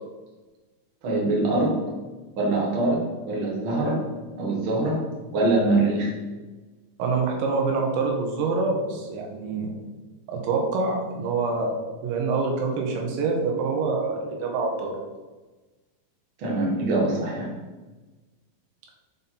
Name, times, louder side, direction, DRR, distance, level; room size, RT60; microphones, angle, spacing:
voice 1, 1.0-1.9 2.4-4.1 4.4-6.1 16.4-17.5, right 2 dB, 50° right, -2 dB, 1.8 m, -24 dB
voice 2, 7.0-9.7 10.3-11.8 12.0-15.0, right 4 dB, 85° right, 1 dB, 2.8 m, -26 dB
5.6 x 5.4 x 4.3 m, 1.2 s
omnidirectional pair, 4.0 m